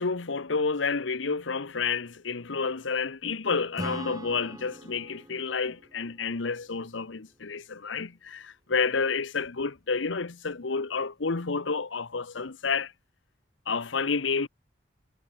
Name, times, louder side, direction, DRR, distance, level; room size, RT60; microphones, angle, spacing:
voice 1, 0.0-12.9 13.7-14.5, left 4 dB, 75° left, 1.0 m, -30 dB
Acoustic guitar / Strum, 3.8-7.3, right 1 dB, 20° right, 2.6 m, -42 dB
head